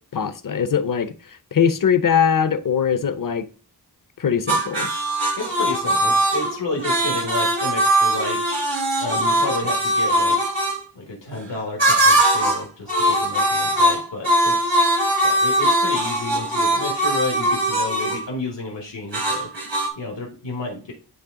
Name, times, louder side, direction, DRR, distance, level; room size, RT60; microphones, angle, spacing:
voice 1, 0.1-3.4 4.2-4.9, left 7 dB, 50° left, 0.6 m, -21 dB
sound 1, 4.5-10.8 11.8-12.6 12.9-18.2 19.1-19.9, right 1 dB, 85° right, 1.9 m, -20 dB
voice 2, 5.4-8.6 9.0-10.5 10.9-14.8 15.2-19.5 19.9-20.9, left 2 dB, 90° left, 1.6 m, -31 dB
9.6 x 3.4 x 3.7 m
wide cardioid pair, 85°, 42 cm